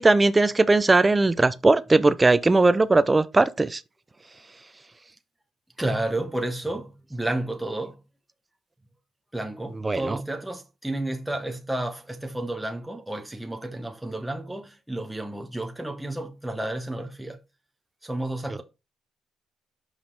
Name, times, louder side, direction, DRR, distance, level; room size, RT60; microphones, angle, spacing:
voice 1, 0.0-3.8 9.8-10.2, right 3 dB, 20° right, 0.5 m, -19 dB
voice 2, 5.8-8.0 9.3-17.4 18.0-18.6, right 1 dB, 5° right, 0.9 m, -31 dB
5.5 x 4.9 x 3.8 m
cardioid pair, 90°, 0 cm